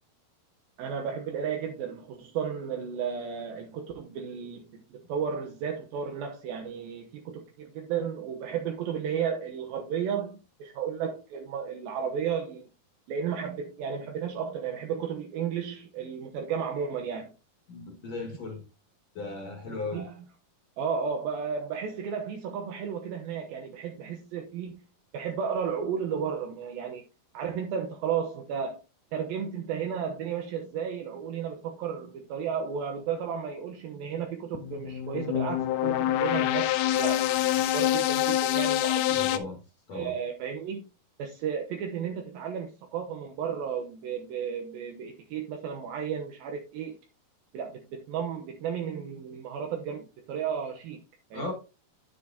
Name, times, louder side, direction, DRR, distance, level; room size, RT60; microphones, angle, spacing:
voice 1, 0.8-12.7 13.1-17.3 19.9-20.1 20.8-24.8 25.1-27.0 27.3-28.8 29.1-39.2 39.9-40.8 41.2-47.0 47.5-51.0 51.3-51.5, right 7 dB, 75° right, 2.6 m, -33 dB
voice 2, 17.7-18.6 19.1-20.0 39.1-39.6 39.9-40.2 51.3-51.5, left 3 dB, 50° left, 2.6 m, -36 dB
sound 1, 34.5-39.4, left 13 dB, 80° left, 1.9 m, -26 dB
9.8 x 8.5 x 2.8 m
omnidirectional pair, 4.4 m